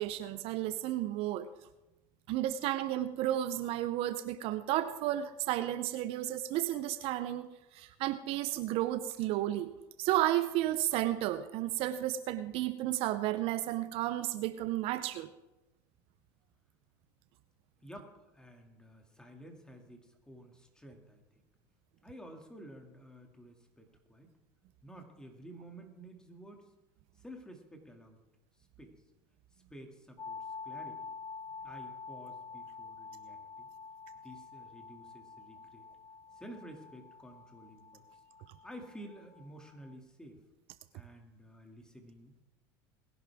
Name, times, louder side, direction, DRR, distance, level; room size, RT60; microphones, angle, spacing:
voice 1, 0.0-1.5 2.3-7.5 7.7-9.7 10.0-15.3, right 13 dB, 60° right, 12 dB, 0.7 m, -32 dB
voice 2, 17.8-21.2 22.0-24.3 24.8-26.6 27.2-28.2 28.8-28.9 29.7-31.1 31.6-33.7 34.2-35.9 36.3-38.0 38.6-40.4 40.9-42.4, equal, 5° left, 3 dB, 2.4 m, -51 dB
sound 1, 30.2-39.9, left 5 dB, 30° left, 0.9 m, -47 dB
20.5 x 11.0 x 3.6 m, 1.0 s
supercardioid pair, 100°, 11 cm